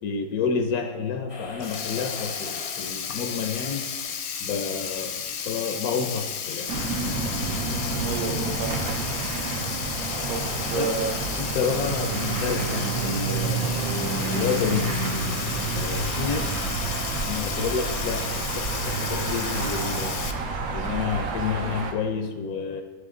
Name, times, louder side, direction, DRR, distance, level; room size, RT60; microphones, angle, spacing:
voice 1, 0.0-3.8 4.4-6.7 10.7-10.9 11.4-13.9 14.2-14.9 15.7-16.6 17.3-20.2 20.7-22.8, left 6 dB, 85° left, 1.1 m, -30 dB
sound 1, 1.3-18.1, left 3 dB, 35° left, 0.4 m, -43 dB
Sink (filling or washing), 1.6-20.3, left 7 dB, 65° left, 0.7 m, -33 dB
sound 2, 6.7-21.9, right 3 dB, 75° right, 1.3 m, -29 dB
voice 2, 7.6-9.1 10.3-11.3, right 5 dB, 60° right, 0.5 m, -32 dB
11.0 x 3.8 x 3.7 m
omnidirectional pair, 1.5 m